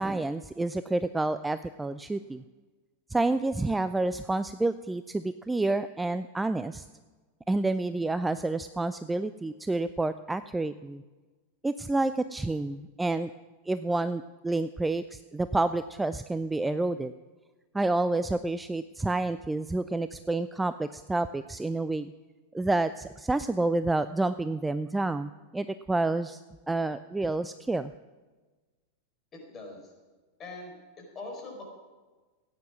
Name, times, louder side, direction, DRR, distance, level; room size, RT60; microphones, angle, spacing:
voice 1, 0.0-2.4 3.1-6.8 7.5-11.0 11.6-13.3 13.7-17.1 17.7-22.1 22.5-26.4 26.7-27.9, right 2 dB, 10° right, 13 dB, 0.4 m, -29 dB
voice 2, 29.3-29.9 30.4-31.6, left 2 dB, 25° left, 1 dB, 4.6 m, -42 dB
16.0 x 9.5 x 6.1 m, 1.3 s
figure-of-eight pair, 90°, 0 cm